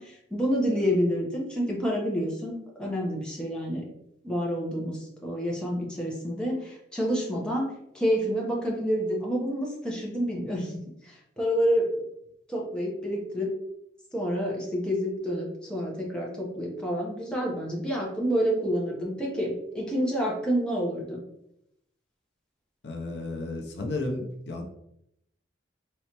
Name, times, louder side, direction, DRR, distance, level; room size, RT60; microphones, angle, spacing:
voice 1, 0.0-3.9 4.2-12.0 12.5-13.5 14.1-21.2, equal, 5° left, -3 dB, 0.9 m, -28 dB
voice 2, 22.8-24.6, left 2 dB, 60° left, 1 dB, 0.7 m, -33 dB
4.2 x 3.1 x 2.9 m, 0.78 s
head